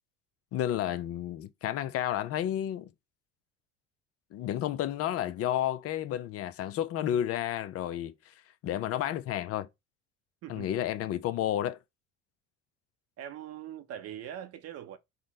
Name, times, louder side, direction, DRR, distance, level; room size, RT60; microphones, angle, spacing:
voice 1, 0.5-2.9 4.3-8.3 8.6-9.7 10.5-11.8, left 11 dB, 45° left, 0.5 m, -31 dB
voice 2, 10.4-10.9 13.2-15.0, right 10 dB, 50° right, 0.7 m, -42 dB
3.8 x 2.0 x 3.8 m
hypercardioid pair, 75°, 32 cm